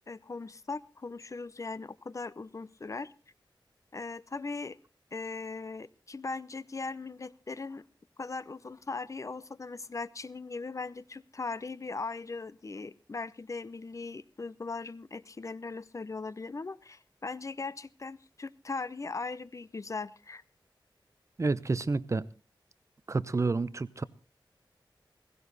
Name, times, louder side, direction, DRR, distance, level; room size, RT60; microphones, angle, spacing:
voice 1, 0.1-3.1 3.9-4.8 5.1-7.8 8.2-20.4, left 3 dB, 40° left, 18 dB, 0.7 m, -39 dB
voice 2, 21.4-22.3 23.1-24.0, right 3 dB, 35° right, 16 dB, 0.7 m, -29 dB
16.5 x 15.5 x 4.0 m, 0.33 s
wide cardioid pair, 100°, 8 cm